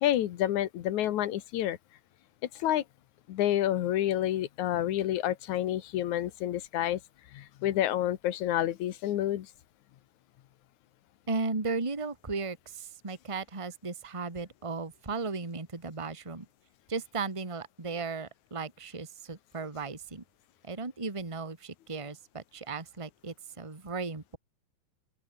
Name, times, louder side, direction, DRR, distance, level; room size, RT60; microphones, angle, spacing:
voice 1, 0.0-1.8 2.5-2.8 3.3-7.0 7.3-9.5, left 12 dB, 75° left, 2.5 m, -29 dB
voice 2, 11.3-16.5 16.9-20.2 20.6-24.4, right 4 dB, 10° right, 1.8 m, -36 dB
open air
omnidirectional pair, 3.5 m